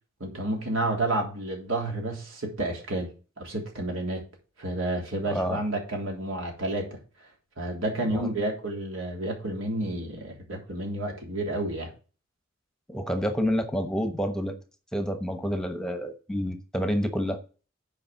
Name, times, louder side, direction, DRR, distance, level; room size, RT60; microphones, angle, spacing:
voice 1, 0.2-3.1 3.4-4.2 4.6-7.0 7.6-11.9, right 1 dB, 80° right, 1 dB, 3.4 m, -30 dB
voice 2, 5.3-5.6 8.1-8.3 12.9-14.5 14.9-17.4, equal, 5° left, 7 dB, 1.0 m, -28 dB
8.6 x 5.0 x 6.9 m, 0.36 s
head